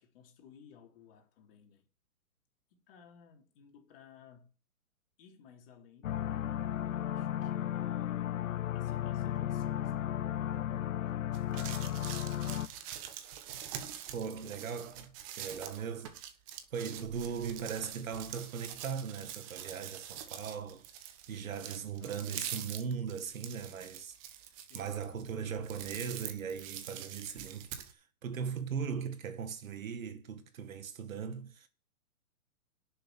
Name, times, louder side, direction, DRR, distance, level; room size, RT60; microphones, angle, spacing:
voice 1, 0.0-1.9 2.7-4.5 5.2-6.3 6.9-8.3 8.7-11.0 22.0-22.6 24.6-25.4, left 7 dB, 40° left, 3.5 m, -58 dB
sound 1, 6.0-12.7, left 11 dB, 60° left, 0.9 m, -34 dB
sound 2, 11.3-27.9, right 10 dB, 25° right, 1.1 m, -45 dB
voice 2, 14.1-16.2 16.7-24.2 24.7-31.7, right 6 dB, 65° right, 2.0 m, -39 dB
11.0 x 6.9 x 6.9 m
hypercardioid pair, 155°, 44 cm